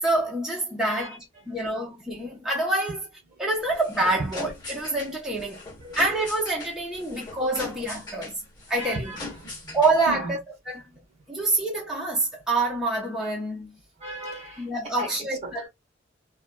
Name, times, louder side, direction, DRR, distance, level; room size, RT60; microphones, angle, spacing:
voice 1, 0.0-3.0 3.4-5.6 6.0-8.4 8.7-9.1 9.7-10.4 10.7-10.8 11.3-13.8 14.6-15.7, right 2 dB, 5° right, 0.8 m, -26 dB
voice 2, 0.8-1.2 4.2-4.3 5.8-6.0 7.1-7.3 8.8-9.8 10.1-10.3 11.2-11.4 14.0-14.7 15.0-15.1 15.4-15.5, right 1 dB, 35° right, 1.1 m, -36 dB
sound 1, 3.6-10.2, left 3 dB, 20° left, 1.3 m, -41 dB
3.2 x 2.3 x 2.3 m
head